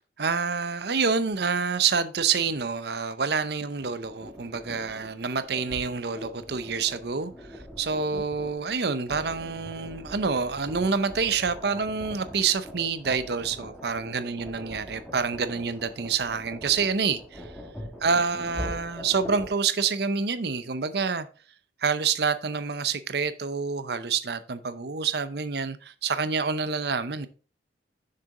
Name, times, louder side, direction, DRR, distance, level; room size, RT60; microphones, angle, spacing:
voice 1, 0.2-17.5 18.0-21.3 21.8-27.3, right 5 dB, 60° right, 0.6 m, -27 dB
sound 1, 3.8-19.5, equal, ahead, 1.7 m, -42 dB
6.7 x 6.7 x 3.7 m
head